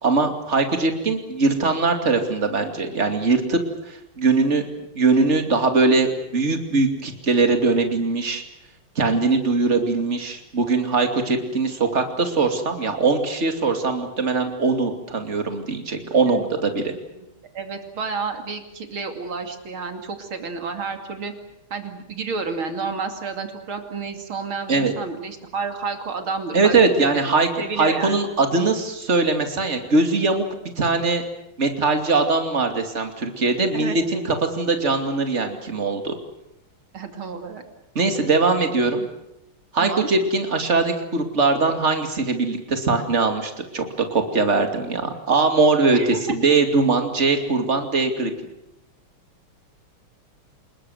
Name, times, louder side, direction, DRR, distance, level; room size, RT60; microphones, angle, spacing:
voice 1, 0.0-3.6 3.9-4.6 4.9-8.4 9.0-16.9 24.7-24.9 26.5-27.5 27.8-30.4 30.8-31.2 31.6-36.1 37.9-39.1 39.7-43.8 44.1-46.0 46.3-48.3, right 3 dB, 30° right, 6 dB, 2.8 m, -21 dB
voice 2, 16.0-16.5 17.2-17.3 17.5-21.3 21.7-27.2 27.6-28.2 33.7-34.0 36.9-37.6 39.8-40.1 45.9-46.4, right 4 dB, 70° right, 6 dB, 3.5 m, -30 dB
26.5 x 21.5 x 8.0 m, 0.85 s
omnidirectional pair, 2.4 m